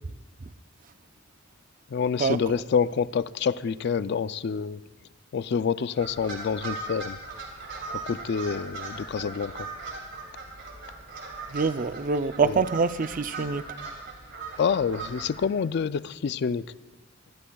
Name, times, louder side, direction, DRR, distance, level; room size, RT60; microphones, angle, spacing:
voice 1, 1.9-4.8 5.3-7.2 7.9-9.7 12.4-12.6 14.6-16.7, left 6 dB, 55° left, 15 dB, 0.4 m, -27 dB
sound 1, 5.9-15.5, right 3 dB, 65° right, 3.5 m, -39 dB
voice 2, 11.5-13.6, right 4 dB, 45° right, 12 dB, 0.5 m, -25 dB
25.5 x 20.0 x 2.3 m, 1.2 s
head